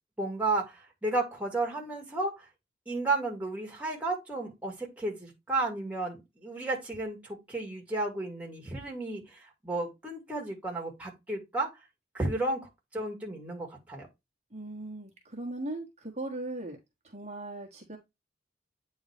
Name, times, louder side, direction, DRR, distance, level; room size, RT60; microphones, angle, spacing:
voice 1, 0.2-2.5 2.9-11.7 12.1-14.1, right 2 dB, 10° right, 2.0 m, -33 dB
voice 2, 14.5-16.8 17.0-18.0, right 2 dB, 35° right, 1.4 m, -38 dB
8.8 x 3.9 x 3.3 m
head